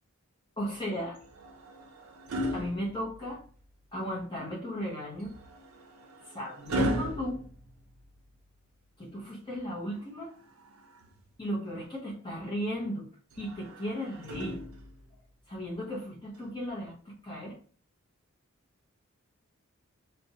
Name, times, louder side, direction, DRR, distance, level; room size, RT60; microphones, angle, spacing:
voice 1, 0.6-1.2 2.5-3.4 3.9-5.3 6.3-7.4 9.0-10.3 11.4-13.1 13.4-14.6 15.5-17.6, equal, 20° left, -4 dB, 0.6 m, -35 dB
sound 1, 1.2-3.6 5.2-8.4 10.2-11.3 13.3-15.1 16.4-16.6, equal, 80° right, 0.5 m, -37 dB
2.4 x 2.1 x 2.7 m, 0.42 s
head